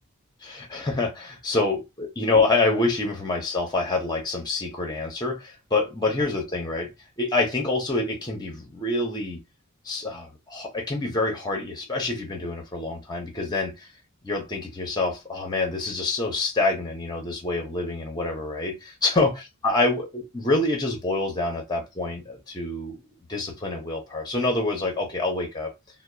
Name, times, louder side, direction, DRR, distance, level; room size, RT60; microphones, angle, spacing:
voice 1, 0.4-6.9 7.2-9.4 9.8-13.9 14.2-19.3 19.6-23.0 23.3-25.7, left 2 dB, 20° left, 0.7 m, -26 dB
2.7 x 2.1 x 2.3 m
head